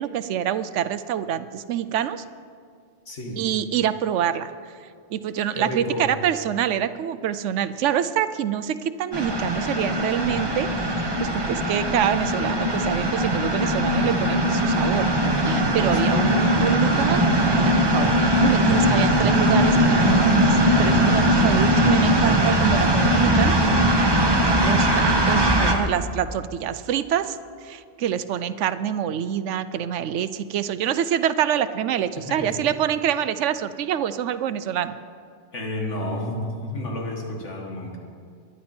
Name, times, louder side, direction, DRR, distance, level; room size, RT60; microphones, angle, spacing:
voice 1, 0.0-2.2 3.4-4.5 5.1-15.1 15.5-17.3 17.6-23.6 24.3-35.0, right 9 dB, 85° right, 13 dB, 1.0 m, -26 dB
voice 2, 3.1-3.4 5.5-6.1 10.2-10.5 15.9-16.4 24.9-25.3 32.3-32.6 35.5-38.0, left 1 dB, 80° left, 0 dB, 2.1 m, -31 dB
sound 1, 9.1-25.7, equal, 20° right, 1.1 m, -20 dB
22.5 x 10.5 x 4.4 m, 2.2 s
omnidirectional pair, 1.2 m